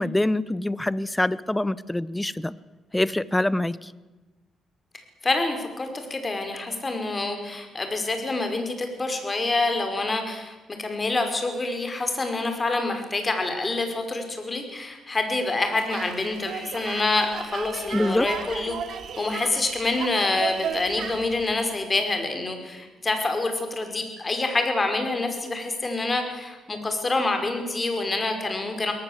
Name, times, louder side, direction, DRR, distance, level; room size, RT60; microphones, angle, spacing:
voice 1, 0.0-2.5 2.9-3.9 17.9-18.3, left 1 dB, 10° left, 19 dB, 0.9 m, -25 dB
voice 2, 5.2-18.8 19.2-28.9, left 2 dB, 25° left, 6 dB, 5.3 m, -27 dB
sound 1, 15.7-21.6, right 6 dB, 65° right, 3.1 m, -35 dB
22.5 x 18.5 x 8.2 m, 1.2 s
cardioid pair, 90°, 0 cm